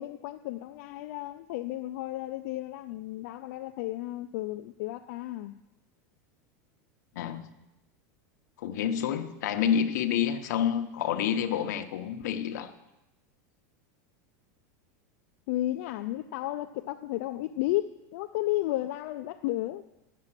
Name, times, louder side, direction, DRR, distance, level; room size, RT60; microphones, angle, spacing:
voice 1, 0.0-5.5 15.5-19.8, left 15 dB, 55° left, 0.4 m, -33 dB
voice 2, 7.2-7.5 8.6-12.7, left 9 dB, 75° left, 1.0 m, -28 dB
10.5 x 7.4 x 7.4 m
supercardioid pair, 160°, 9 cm